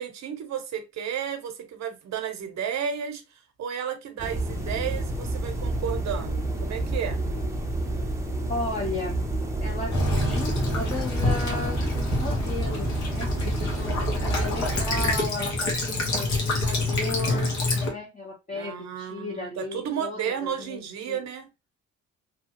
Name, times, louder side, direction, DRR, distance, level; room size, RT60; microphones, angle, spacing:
voice 1, 0.0-7.2 18.5-21.5, right 8 dB, 65° right, 0.8 m, -33 dB
sound 1, 4.2-15.1, right 1 dB, 10° right, 0.7 m, -29 dB
voice 2, 8.5-9.2 9.6-21.2, left 2 dB, 25° left, 0.8 m, -35 dB
Child speech kid speaking / Bird vocalization bird call bird song / Stream, 9.9-17.9, left 2 dB, 65° left, 1.2 m, -27 dB
2.8 x 2.3 x 2.9 m
cardioid pair, 90°, 30 cm